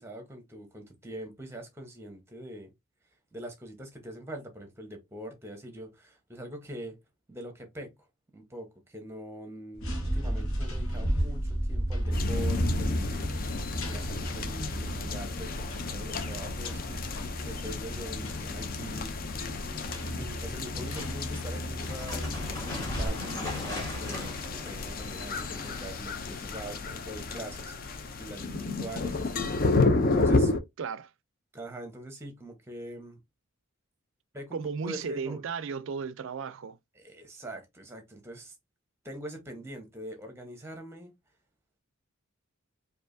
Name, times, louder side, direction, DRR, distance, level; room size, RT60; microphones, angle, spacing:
voice 1, 0.0-2.7 3.3-7.0 7.3-8.1 8.3-13.3 13.9-19.1 20.1-29.4 30.1-30.5 31.5-33.2 34.3-35.4 37.0-38.5 39.0-41.1, right 1 dB, 10° right, 0.9 m, -43 dB
sound 1, 9.7-23.1, right 1 dB, 70° left, 1.3 m, -34 dB
sound 2, 12.1-30.6, left 3 dB, 40° left, 0.5 m, -31 dB
sound 3, 21.8-26.0, left 2 dB, 15° left, 2.0 m, -39 dB
voice 2, 30.8-31.1 34.5-36.8, right 5 dB, 60° right, 0.4 m, -35 dB
4.6 x 2.7 x 2.6 m
head